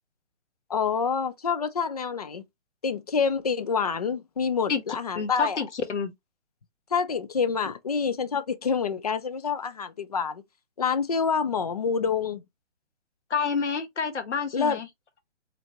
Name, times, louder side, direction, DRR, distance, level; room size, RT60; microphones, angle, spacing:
voice 1, 0.7-2.4 2.8-5.6 6.9-10.4 10.8-12.4 14.5-14.8, left 6 dB, 35° left, 0.4 m, -27 dB
voice 2, 5.2-6.1 13.3-14.9, left 6 dB, 80° left, 1.2 m, -28 dB
4.4 x 2.5 x 2.8 m
hypercardioid pair, 155°, 35 cm